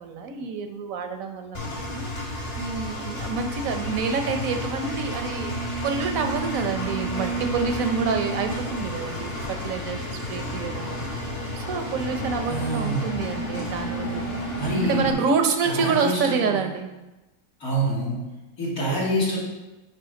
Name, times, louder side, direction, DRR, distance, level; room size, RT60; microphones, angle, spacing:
voice 1, 0.0-2.1 2.6-5.5 5.8-11.2 11.5-14.5 14.8-16.9, right 5 dB, 75° right, 6 dB, 1.1 m, -28 dB
Engine, 1.5-15.1, equal, 45° left, 1.9 m, -31 dB
voice 2, 12.5-13.1 14.6-15.1 15.6-16.4 17.6-18.2 18.6-19.4, right 1 dB, 90° left, -6 dB, 3.0 m, -26 dB
9.3 x 3.2 x 5.1 m, 1.1 s
omnidirectional pair, 1.5 m